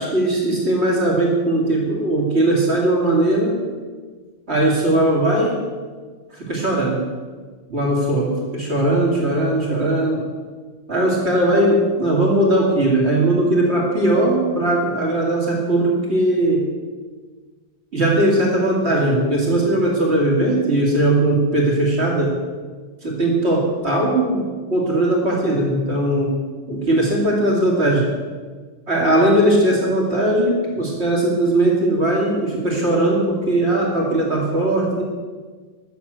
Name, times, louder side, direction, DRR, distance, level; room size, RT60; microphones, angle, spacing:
voice 1, 0.0-3.6 4.5-5.6 6.3-7.1 7.7-10.2 10.9-16.7 17.9-22.4 23.0-26.4 26.7-28.1 28.9-35.0, right 1 dB, 85° right, -2 dB, 2.9 m, -19 dB
13.0 x 7.3 x 9.2 m, 1.5 s
omnidirectional pair, 1.1 m